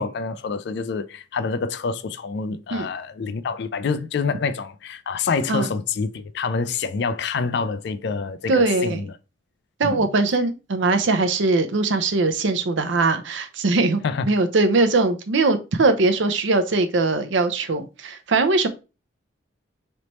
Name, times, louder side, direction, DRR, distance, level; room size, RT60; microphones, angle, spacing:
voice 1, 0.0-9.1 9.8-10.1 14.0-14.3, left 5 dB, 60° left, 0.4 m, -27 dB
voice 2, 8.5-9.0 9.8-18.7, right 3 dB, 70° right, 0.6 m, -21 dB
4.1 x 3.3 x 3.0 m
head